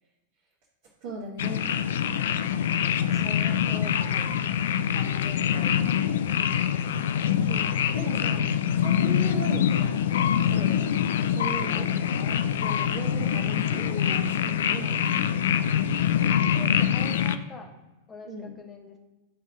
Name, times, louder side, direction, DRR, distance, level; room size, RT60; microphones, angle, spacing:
voice 1, 1.0-1.7 3.1-3.6 7.4-8.5 8.8-10.1 10.4-10.9 11.3-11.9 12.6-15.2 18.2-18.5, right 2 dB, 45° right, -5 dB, 1.3 m, -38 dB
sound 1, 1.4-17.4, left 9 dB, 60° left, 0.3 m, -25 dB
voice 2, 2.8-4.4 4.9-6.7 8.9-9.1 11.6-12.5 16.5-17.7 18.1-19.0, left 3 dB, 20° left, 3 dB, 1.0 m, -44 dB
10.0 x 3.5 x 3.6 m, 1.1 s
figure-of-eight pair, 90°, 0 cm